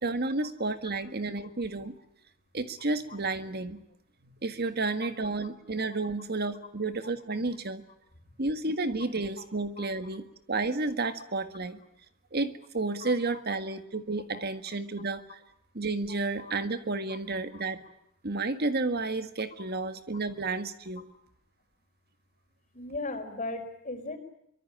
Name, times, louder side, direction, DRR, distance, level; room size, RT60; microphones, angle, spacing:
voice 1, 0.0-1.9 2.5-3.8 4.4-7.8 8.4-11.8 12.3-15.4 15.8-17.8 18.2-21.1, right 3 dB, 50° right, 10 dB, 1.7 m, -31 dB
voice 2, 13.0-13.4 14.3-14.4 16.1-16.5 17.1-17.2 17.5-17.6 19.6-19.7 22.7-24.2, left 2 dB, 40° left, 5 dB, 4.7 m, -38 dB
24.5 x 24.0 x 8.9 m, 0.74 s
head